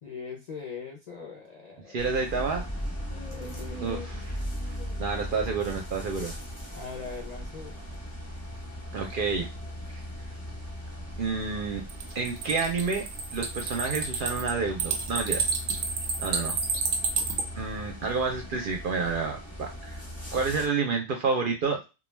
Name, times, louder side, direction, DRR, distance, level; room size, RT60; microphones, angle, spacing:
voice 1, 0.0-2.0 3.1-5.0 6.7-7.9, left 4 dB, 55° left, -1 dB, 0.5 m, -41 dB
voice 2, 1.9-2.6 3.8-4.0 4.7-6.3 8.9-9.5 9.9-10.0 11.2-11.8 12.1-13.0 13.3-15.5 16.2-16.6 17.5-20.0 20.3-21.9, right 4 dB, 60° right, 2 dB, 0.6 m, -29 dB
sound 1, 2.0-20.7, equal, 15° left, 0.7 m, -38 dB
sound 2, 11.9-17.4, right 5 dB, 90° right, 1.0 m, -30 dB
2.2 x 2.2 x 3.2 m, 0.27 s
omnidirectional pair, 1.3 m